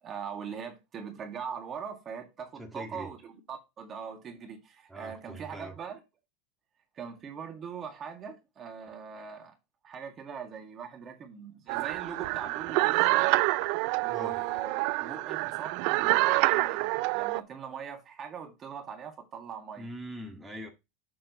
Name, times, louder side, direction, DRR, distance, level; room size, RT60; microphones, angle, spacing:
voice 1, 0.0-6.0 6.9-9.6 9.8-13.4 14.0-19.9, right 6 dB, 30° right, 1.9 m, -41 dB
voice 2, 2.6-3.1 4.9-5.8 14.1-14.4 19.8-20.7, right 1 dB, 5° right, 1.8 m, -42 dB
sound 1, 11.7-17.4, right 22 dB, 60° right, 0.3 m, -27 dB
7.4 x 7.1 x 3.0 m
supercardioid pair, 135°, 0 cm